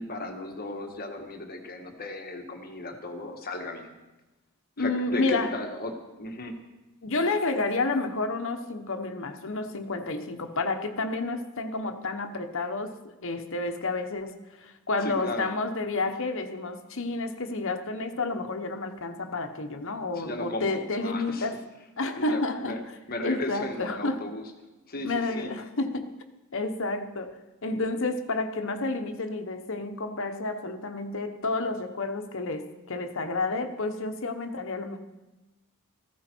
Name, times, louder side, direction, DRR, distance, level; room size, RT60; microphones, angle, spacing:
voice 1, 0.0-4.0 4.8-6.5 15.0-15.5 20.1-21.5 22.2-22.8 23.1-24.4 24.9-25.5, left 2 dB, 45° left, 4 dB, 1.5 m, -35 dB
voice 2, 4.8-5.6 7.0-21.6 22.0-22.9 23.2-24.3 25.0-26.2 26.5-35.0, left 3 dB, 60° left, 7 dB, 1.2 m, -30 dB
15.5 x 15.0 x 4.6 m, 1.1 s
head